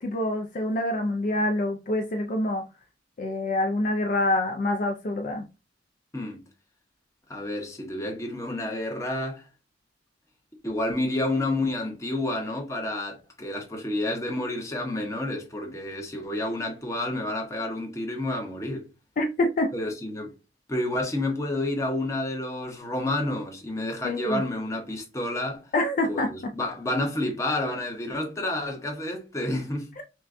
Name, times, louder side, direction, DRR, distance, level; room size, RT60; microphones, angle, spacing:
voice 1, 0.0-2.6 3.2-5.4 19.2-19.7 24.0-24.4 25.7-26.3 30.0-30.1, left 1 dB, 45° left, 0.4 m, -26 dB
voice 2, 7.3-9.5 10.6-18.9 19.7-20.3 20.7-25.7 26.1-29.9, left 1 dB, 15° left, 0.8 m, -30 dB
6.1 x 2.2 x 2.5 m
head